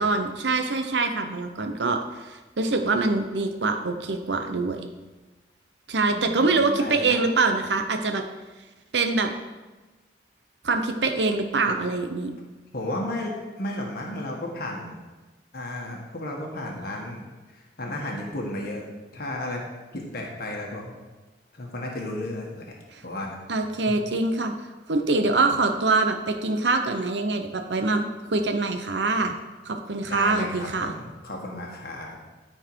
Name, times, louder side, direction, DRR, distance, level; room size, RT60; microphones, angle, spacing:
voice 1, 0.0-4.8 5.9-8.2 8.9-9.3 10.6-12.3 22.9-23.0 23.5-24.5 24.9-29.3 29.6-30.9, right 3 dB, 80° right, 5 dB, 0.9 m, -24 dB
voice 2, 6.1-7.2 11.6-11.8 12.7-15.0 15.5-18.8 19.1-19.6 19.9-20.9 21.5-22.7 23.0-23.4 23.9-24.0 30.1-32.2, left 1 dB, 60° left, -1 dB, 1.4 m, -33 dB
13.5 x 4.5 x 4.7 m, 1.2 s
head